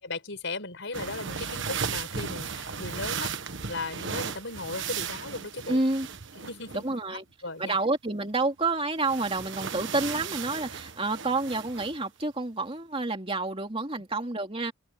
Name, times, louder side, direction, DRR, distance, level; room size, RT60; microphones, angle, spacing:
voice 1, 0.0-3.3 3.7-5.8 6.4-7.8 9.7-9.8, left 3 dB, 60° left, 6.1 m, -37 dB
sound 1, 0.9-6.9 9.0-12.0, right 6 dB, 55° right, 1.4 m, -36 dB
voice 2, 5.7-6.1 6.8-7.2 7.6-14.7, right 2 dB, 25° right, 2.7 m, -29 dB
open air
head